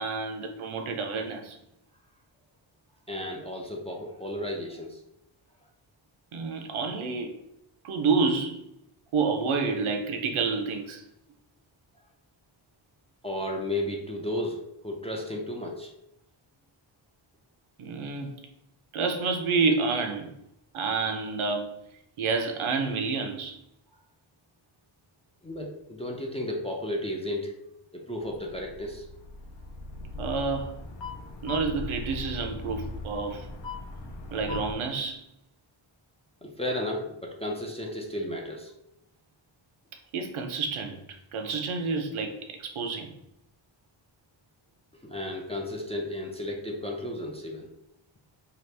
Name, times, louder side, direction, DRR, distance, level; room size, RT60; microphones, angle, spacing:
voice 1, 0.0-1.6 6.3-7.4 7.8-8.6 9.1-11.0 17.8-18.3 18.9-20.3 20.7-21.7 22.2-23.6 30.2-30.8 31.4-33.5 34.3-35.2 40.1-41.0 41.3-43.1, right 4 dB, 80° right, 0.6 m, -29 dB
voice 2, 3.1-5.0 13.2-15.9 25.4-27.5 27.9-29.1 36.4-38.7 45.0-47.7, left 1 dB, 15° left, 0.3 m, -33 dB
sound 1, 28.2-34.7, left 2 dB, 65° left, 0.6 m, -39 dB
2.9 x 2.4 x 3.2 m
wide cardioid pair, 120°, 48 cm